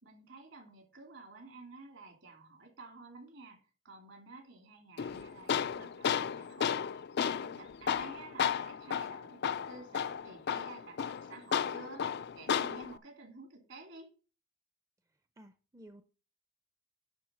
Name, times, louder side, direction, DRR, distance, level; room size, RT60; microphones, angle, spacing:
voice 1, 0.0-3.6 3.8-14.1, right 3 dB, 65° right, 3.0 m, -52 dB
Tools, 5.0-13.0, left 8 dB, 55° left, 0.4 m, -34 dB
voice 2, 15.4-16.0, right 1 dB, 15° right, 0.5 m, -54 dB
10.5 x 3.7 x 6.3 m
head